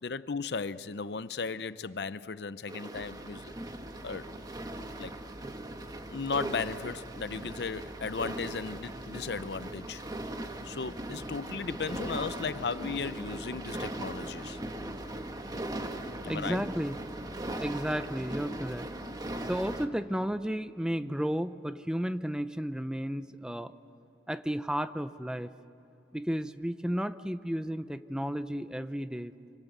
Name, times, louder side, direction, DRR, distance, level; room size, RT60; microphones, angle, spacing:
voice 1, 0.0-3.5 4.0-4.3 5.0-5.1 6.1-10.0 10.6-14.6 16.2-16.6, left 5 dB, 65° left, 0.6 m, -36 dB
sound 1, 2.7-19.8, right 1 dB, 20° right, 1.4 m, -39 dB
voice 2, 16.2-17.0 17.6-19.0 19.4-23.7 24.3-25.5 26.1-29.3, equal, 5° right, 0.6 m, -33 dB
26.5 x 26.0 x 8.1 m
head